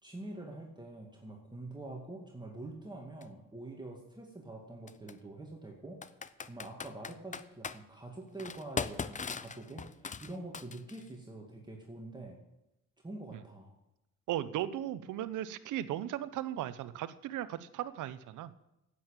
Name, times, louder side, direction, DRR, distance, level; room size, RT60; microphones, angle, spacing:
voice 1, 0.0-6.0 6.4-12.4 13.0-13.7, right 2 dB, 15° right, -1 dB, 2.1 m, -45 dB
Computer keyboard, 3.2-3.3 4.9-5.1 6.0-7.8 8.4-11.1, left 5 dB, 25° left, 0.6 m, -39 dB
voice 2, 14.3-18.5, right 12 dB, 85° right, 14 dB, 0.8 m, -37 dB
10.5 x 8.6 x 8.9 m, 0.92 s
cardioid pair, 90°, 30 cm